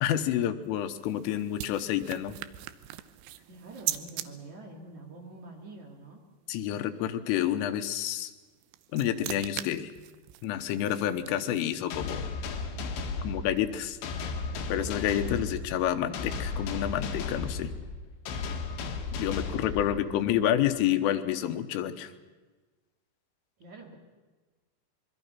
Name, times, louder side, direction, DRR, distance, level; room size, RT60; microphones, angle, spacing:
voice 1, 0.0-2.4 6.5-8.3 8.9-9.9 10.4-12.3 13.2-14.0 14.7-17.7 19.2-22.1, left 11 dB, 90° left, 8 dB, 3.7 m, -29 dB
sound 1, 0.6-4.3 8.4-11.8, right 14 dB, 80° right, 3.2 m, -40 dB
voice 2, 3.5-6.3 23.6-24.0, right 2 dB, 45° right, 1 dB, 3.0 m, -46 dB
sound 2, 11.9-20.4, left 4 dB, 70° left, 4.1 m, -35 dB
26.5 x 22.5 x 5.8 m, 1.3 s
omnidirectional pair, 5.7 m